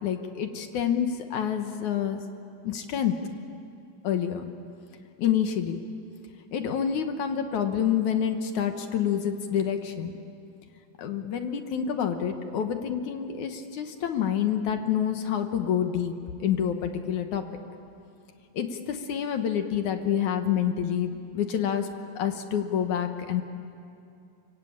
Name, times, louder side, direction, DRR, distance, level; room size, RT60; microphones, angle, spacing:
voice 1, 0.0-2.3 2.6-3.1 4.0-4.5 5.2-5.8 6.5-10.1 11.0-16.1 16.4-17.4 18.5-21.9 22.2-23.4, left 9 dB, 60° left, 6 dB, 2.3 m, -27 dB
25.0 x 24.5 x 8.8 m, 2.6 s
omnidirectional pair, 4.5 m